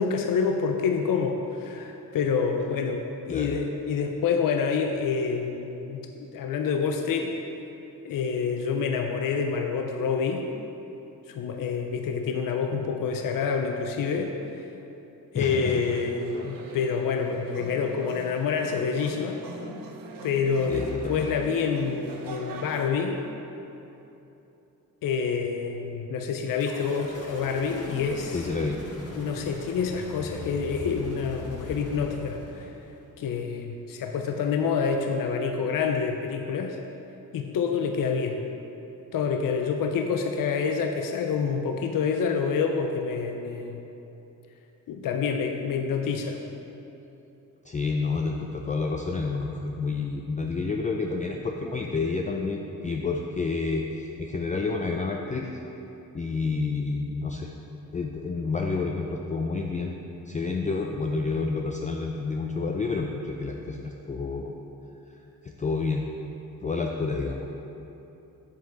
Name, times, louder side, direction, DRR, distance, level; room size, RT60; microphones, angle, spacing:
voice 1, 0.0-6.1 6.3-7.3 8.0-10.5 11.3-14.3 15.3-19.8 20.2-23.2 25.0-28.5 29.2-32.7 33.2-36.8 37.3-38.4 39.1-43.8 44.9-46.4, left 5 dB, 75° left, 4 dB, 0.6 m, -27 dB
voice 2, 15.3-15.8 16.3-16.4 20.7-21.3 28.3-28.8 47.7-55.5 56.1-57.5 57.9-59.9 60.3-64.5 65.4-66.1 66.6-67.4, left 4 dB, 25° left, 1 dB, 0.3 m, -29 dB
sound 1, 15.4-22.9, right 3 dB, 75° right, 0.8 m, -42 dB
sound 2, 26.6-33.1, left 2 dB, 45° left, 1.4 m, -40 dB
7.7 x 7.1 x 3.9 m, 3.0 s
wide cardioid pair, 140°, 34 cm